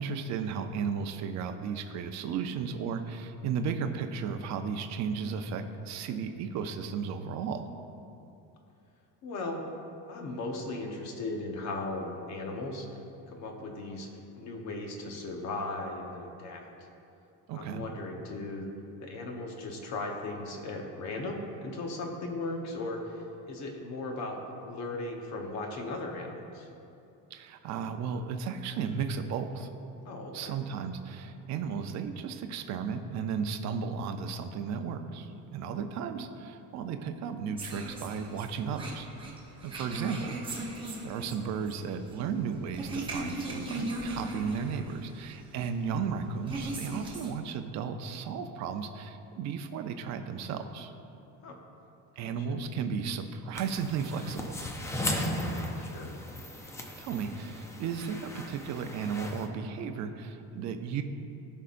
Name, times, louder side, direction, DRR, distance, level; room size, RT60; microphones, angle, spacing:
voice 1, 0.0-7.7 17.5-17.9 27.3-29.7 30.3-39.1 39.6-50.9 52.2-54.6 57.0-61.0, right 6 dB, 50° right, 7 dB, 0.6 m, -34 dB
voice 2, 9.2-9.7 10.1-12.9 13.3-14.1 14.4-16.7 17.5-18.7 19.0-24.4 24.6-26.7 30.0-30.6 51.4-51.6 52.2-52.6 55.5-56.1, left 2 dB, 50° left, 2 dB, 1.1 m, -37 dB
sound 1, 37.6-47.3, right 2 dB, 15° right, 0.9 m, -39 dB
sound 2, 53.5-59.5, left 1 dB, 10° left, 0.3 m, -36 dB
16.0 x 5.5 x 2.5 m, 2.7 s
cardioid pair, 180°, 36 cm